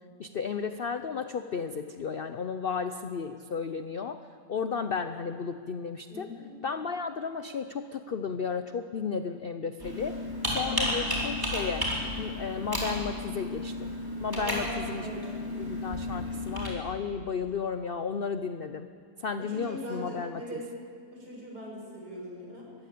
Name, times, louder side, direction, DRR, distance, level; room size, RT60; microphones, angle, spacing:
voice 1, 0.2-4.2 4.5-6.3 6.6-10.2 10.5-11.9 12.2-13.9 14.2-15.1 15.5-18.9 19.2-20.6, left 5 dB, 65° left, 9 dB, 0.5 m, -33 dB
voice 2, 6.1-6.5 10.5-10.9 14.4-15.5 19.4-20.7 21.1-22.7, left 1 dB, 65° right, -2 dB, 6.5 m, -40 dB
Computer keyboard, 9.8-16.7, left 1 dB, 10° right, 4.6 m, -33 dB
23.0 x 15.0 x 8.6 m, 2.2 s
omnidirectional pair, 1.9 m